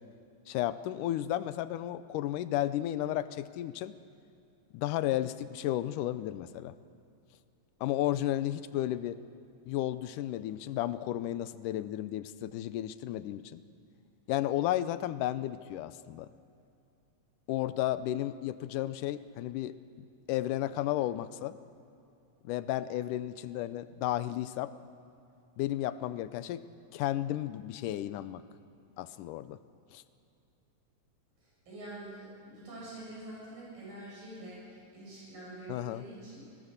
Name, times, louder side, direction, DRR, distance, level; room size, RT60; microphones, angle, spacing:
voice 1, 0.5-3.9 4.7-6.8 7.8-9.2 9.7-13.6 14.3-16.3 17.5-19.8 20.3-21.6 22.4-24.7 25.6-26.6 26.9-28.4 29.0-29.6 29.9-30.0 35.7-36.0, left 13 dB, 80° left, 13 dB, 2.2 m, -33 dB
voice 2, 31.4-36.4, right 1 dB, 90° right, -6 dB, 9.0 m, -46 dB
24.5 x 18.5 x 6.7 m, 2.6 s
omnidirectional pair, 3.8 m